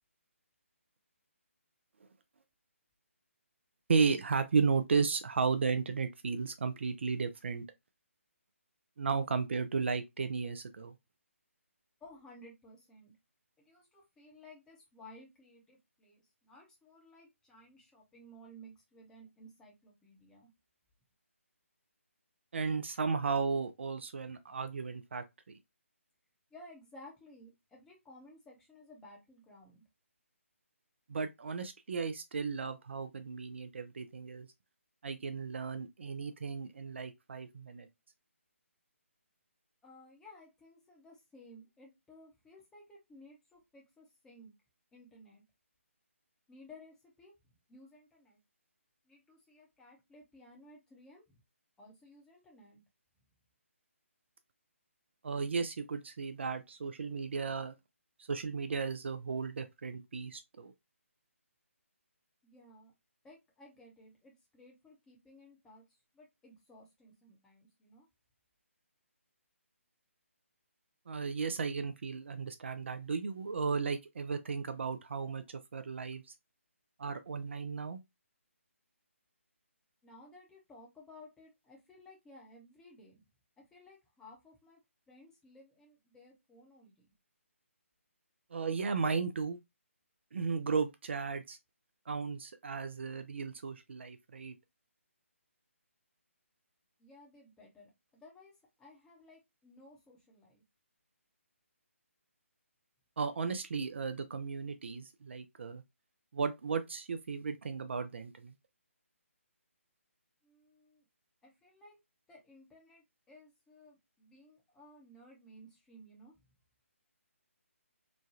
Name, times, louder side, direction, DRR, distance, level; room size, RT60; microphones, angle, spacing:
voice 1, 3.9-7.6 9.0-10.9 22.5-25.2 31.1-34.5 35.0-37.9 55.2-57.7 58.3-60.7 71.1-75.4 75.7-76.2 77.0-78.0 88.5-89.6 90.3-91.6 92.1-94.5 103.2-105.8 106.3-108.5, right 5 dB, 55° right, 0.4 m, -34 dB
voice 2, 12.0-13.2 13.6-20.5 26.5-29.8 39.8-44.5 44.9-45.4 46.5-47.4 47.7-48.4 49.0-51.4 51.8-52.8 62.4-62.9 63.2-65.8 66.1-68.1 80.0-83.2 83.6-84.8 85.1-87.1 97.0-98.5 98.8-100.6 110.4-111.1 111.4-112.0 112.3-116.3, left 1 dB, 5° left, 0.7 m, -57 dB
3.1 x 2.2 x 2.7 m
figure-of-eight pair, 145°, 8 cm